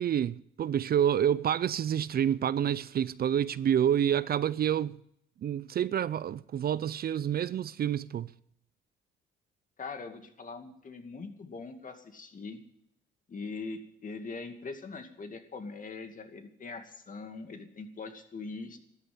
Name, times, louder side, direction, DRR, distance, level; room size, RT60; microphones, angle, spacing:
voice 1, 0.0-5.0 5.4-8.3, right 9 dB, 50° right, 0.5 m, -28 dB
voice 2, 9.8-12.6 13.3-18.8, left 4 dB, 40° left, 2.3 m, -42 dB
13.0 x 10.0 x 9.4 m
cardioid pair, 90°, 20 cm